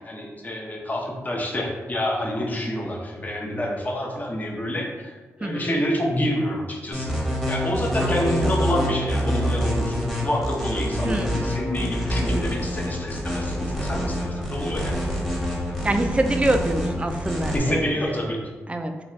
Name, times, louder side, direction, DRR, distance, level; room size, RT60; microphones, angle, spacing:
voice 1, 0.0-7.1 7.5-15.1 17.5-18.4, left 1 dB, 30° left, -1 dB, 0.7 m, -28 dB
voice 2, 5.4-5.8 8.0-8.5 11.0-11.6 15.8-18.2 18.7-18.9, right 1 dB, 20° right, 5 dB, 0.4 m, -26 dB
sound 1, 6.9-17.6, equal, 5° left, 1.0 m, -26 dB
2.6 x 2.3 x 3.1 m, 1.3 s
supercardioid pair, 50°, 6 cm